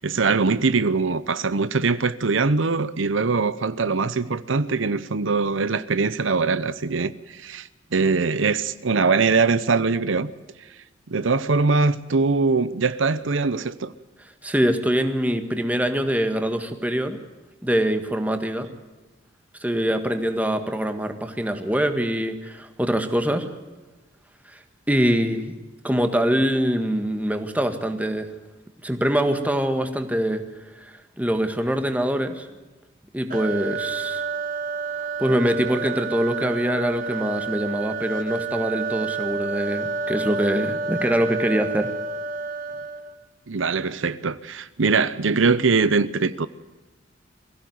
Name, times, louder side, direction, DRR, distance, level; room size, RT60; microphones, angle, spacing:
voice 1, 0.0-10.3 11.1-13.9 43.5-46.5, right 4 dB, 80° right, 15 dB, 0.8 m, -22 dB
voice 2, 14.2-17.2 17.6-18.7 19.6-23.5 24.4-25.5 25.8-28.3 28.8-30.4 30.7-32.5 33.1-34.2 35.2-41.9, equal, 10° right, 7 dB, 1.7 m, -24 dB
sound 1, 33.3-43.2, right 4 dB, 45° right, 1.7 m, -29 dB
22.5 x 16.0 x 9.4 m, 1.2 s
head